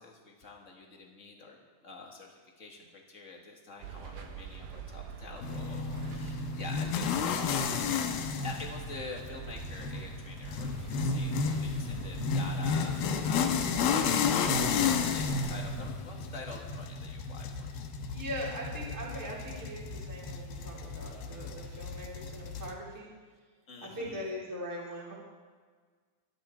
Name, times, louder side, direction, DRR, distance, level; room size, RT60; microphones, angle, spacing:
voice 1, 0.0-14.3 14.8-17.7 23.7-24.3, left 3 dB, 35° left, 0 dB, 1.3 m, -46 dB
sound 1, 3.8-15.8, right 7 dB, 75° right, 3.0 m, -45 dB
sound 2, 5.4-22.7, left 5 dB, 75° left, 2.8 m, -32 dB
voice 2, 18.1-23.1 24.0-25.1, equal, 5° right, -4 dB, 2.6 m, -40 dB
25.0 x 10.5 x 4.5 m, 1.5 s
omnidirectional pair, 4.4 m